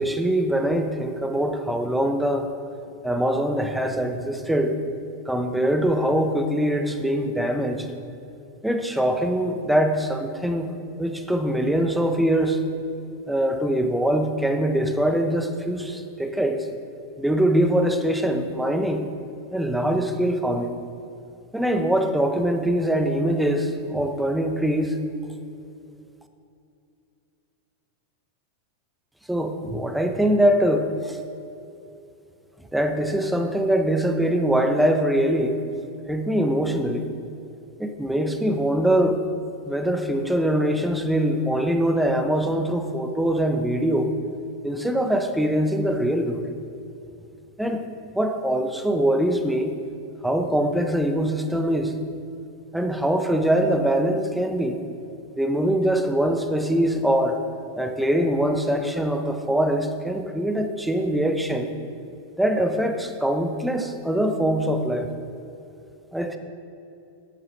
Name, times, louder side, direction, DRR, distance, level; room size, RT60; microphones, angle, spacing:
voice 1, 0.0-2.5 3.0-4.7 5.3-7.9 8.6-12.6 13.3-16.7 17.2-19.0 19.5-20.7 21.5-25.0 29.3-31.2 32.7-35.6 36.1-37.1 37.8-39.2 39.7-44.1 44.6-46.4 47.6-47.8 48.1-49.7 50.2-51.9 52.7-54.8 55.4-57.4 57.7-61.7 62.4-65.1 66.1-66.4, right 1 dB, 5° right, 6 dB, 0.8 m, -23 dB
8.9 x 6.7 x 5.6 m, 2.7 s
figure-of-eight pair, 90°, 0 cm